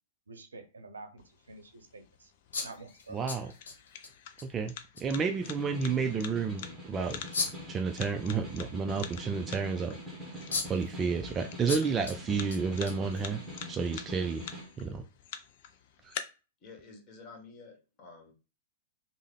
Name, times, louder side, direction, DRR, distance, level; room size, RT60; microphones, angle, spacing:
voice 1, 0.3-1.2 1.5-2.3 2.6-3.2, right 3 dB, 85° right, 0.6 m, -48 dB
sound 1, 1.2-16.2, left 9 dB, 55° left, 0.5 m, -47 dB
sound 2, 2.5-4.1 4.4-4.5 5.0-5.1 7.3-7.7 10.0-10.1 10.5-10.9 11.7-12.2 12.5-13.5, left 4 dB, 75° left, 0.9 m, -35 dB
voice 2, 3.1-3.5 4.4-4.7 5.0-7.2 7.7-10.0 10.6-13.4 13.7-14.4 14.8-15.0 16.0-16.1, right 5 dB, 25° right, 0.3 m, -31 dB
Snare drum, 4.9-14.7, equal, ahead, 1.2 m, -44 dB
voice 3, 16.6-18.3, left 4 dB, 35° left, 1.4 m, -50 dB
3.5 x 2.1 x 3.3 m
hypercardioid pair, 105°, 0 cm